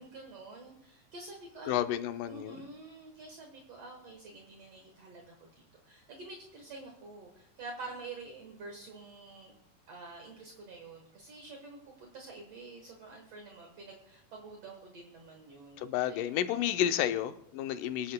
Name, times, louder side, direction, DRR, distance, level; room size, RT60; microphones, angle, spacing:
voice 1, 0.0-1.8 2.3-9.5 9.9-16.8, right 3 dB, 60° right, 2 dB, 2.2 m, -48 dB
voice 2, 1.7-2.6 15.8-18.1, left 11 dB, 90° left, 9 dB, 2.3 m, -31 dB
24.0 x 10.5 x 2.2 m, 0.74 s
omnidirectional pair, 3.7 m